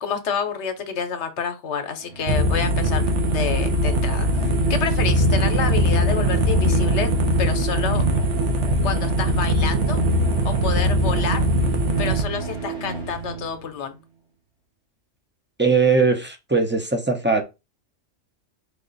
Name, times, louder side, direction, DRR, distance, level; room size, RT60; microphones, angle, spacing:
voice 1, 0.0-3.0 3.3-7.1 7.4-8.0 8.8-10.0 10.4-11.5 12.0-14.0, left 6 dB, 70° left, 1.1 m, -28 dB
sound 1, 2.0-13.7, right 5 dB, 55° right, 1.9 m, -29 dB
sound 2, 2.3-12.2, equal, 70° right, 1.1 m, -21 dB
voice 2, 15.6-17.4, right 4 dB, 15° right, 0.4 m, -20 dB
4.9 x 2.5 x 3.9 m
omnidirectional pair, 1.2 m